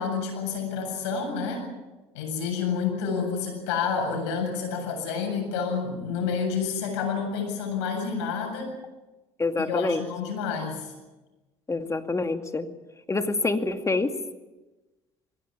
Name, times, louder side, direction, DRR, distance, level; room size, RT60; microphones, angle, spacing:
voice 1, 0.0-1.7 2.1-8.7 9.6-10.9, left 5 dB, 85° left, 3 dB, 7.8 m, -29 dB
voice 2, 9.4-10.0 11.7-12.7 13.1-14.1, left 3 dB, 20° left, 7 dB, 2.3 m, -26 dB
22.0 x 17.5 x 9.9 m, 1.1 s
hypercardioid pair, 70°, 14 cm